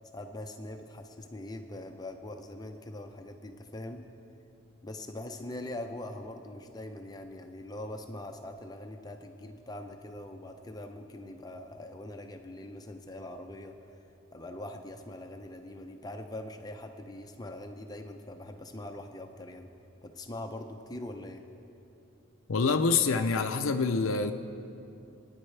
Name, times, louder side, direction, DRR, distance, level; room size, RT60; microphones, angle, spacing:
voice 1, 0.1-4.0 4.8-14.0 14.3-19.7 20.0-21.4, left 1 dB, 20° left, 4 dB, 0.5 m, -42 dB
voice 2, 22.5-24.3, left 4 dB, 80° left, 7 dB, 0.6 m, -26 dB
24.5 x 9.7 x 3.3 m, 2.8 s
head